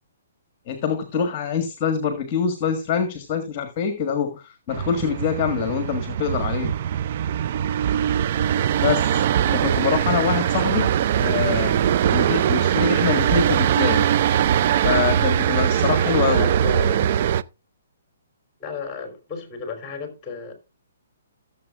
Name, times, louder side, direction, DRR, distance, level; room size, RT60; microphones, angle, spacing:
voice 1, 0.7-6.7 8.8-9.2 9.5-10.9 11.2-11.8 12.1-14.1 14.8-16.5, left 7 dB, 35° left, 1.6 m, -25 dB
sound 1, 4.7-17.4, right 9 dB, 50° right, 0.4 m, -21 dB
voice 2, 16.3-17.3 18.6-20.5, left 5 dB, 15° left, 3.4 m, -34 dB
17.0 x 7.5 x 2.4 m
hypercardioid pair, 140°, 0 cm